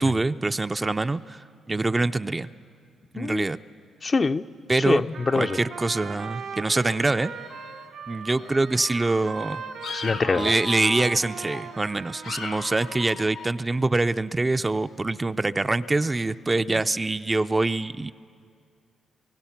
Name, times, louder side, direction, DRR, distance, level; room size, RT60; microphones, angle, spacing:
voice 1, 0.0-2.5 3.1-3.6 4.7-5.0 5.3-7.3 8.1-9.6 10.4-18.1, right 2 dB, 25° right, 11 dB, 0.4 m, -24 dB
voice 2, 3.2-3.5 4.0-4.4 4.9-5.6 9.9-10.5, left 4 dB, 40° left, 10 dB, 0.5 m, -24 dB
Trumpet, 5.1-13.2, right 6 dB, 80° right, 0.9 m, -39 dB
sound 1, 6.8-8.1 8.4-8.9 9.4-11.9 12.2-13.5, left 6 dB, 80° left, 1.3 m, -39 dB
27.0 x 17.0 x 5.8 m, 2.2 s
supercardioid pair, 60°, 0 cm